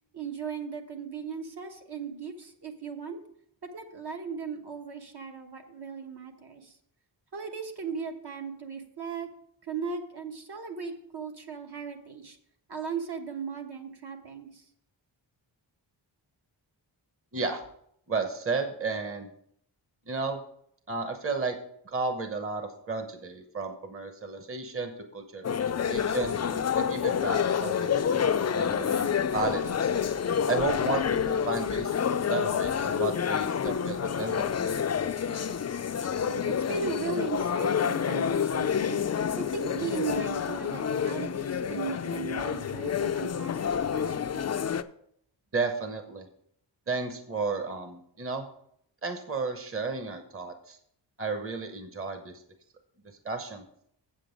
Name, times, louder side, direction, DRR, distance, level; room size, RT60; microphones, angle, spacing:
voice 1, 0.1-3.2 3.6-6.8 7.3-9.3 9.6-12.4 12.7-14.7 36.0-39.0 39.4-44.5, right 5 dB, 60° right, 3 dB, 1.2 m, -37 dB
voice 2, 18.1-19.3 20.1-20.4 20.9-21.6 21.9-26.4 26.8-29.9 30.5-31.9 32.3-34.8 45.5-46.3 46.9-48.5 49.0-50.8 51.2-52.3 53.2-53.6, right 4 dB, 30° right, 6 dB, 1.0 m, -33 dB
sound 1, 25.4-44.8, left 7 dB, 35° left, 0.4 m, -28 dB
7.7 x 7.6 x 5.1 m, 0.69 s
wide cardioid pair, 105°, 46 cm